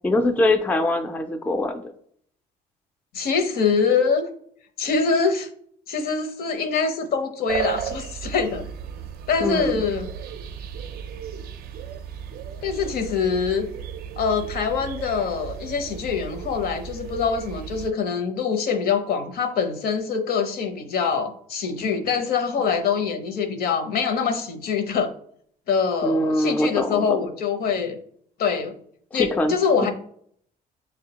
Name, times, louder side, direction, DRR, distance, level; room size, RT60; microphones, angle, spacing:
voice 1, 0.0-1.9 9.4-9.8 26.0-27.3 29.1-29.6, left 1 dB, 10° left, 5 dB, 0.3 m, -23 dB
voice 2, 3.1-4.2 4.8-5.5 5.9-8.7 9.3-10.1 12.6-13.7 14.2-25.1 25.7-28.0 28.4-28.7 29.1-29.9, left 5 dB, 65° left, 6 dB, 0.7 m, -24 dB
sound 1, 7.5-17.9, right 8 dB, 65° right, 0.4 m, -35 dB
6.1 x 2.1 x 2.8 m, 0.63 s
cardioid pair, 110°, 17 cm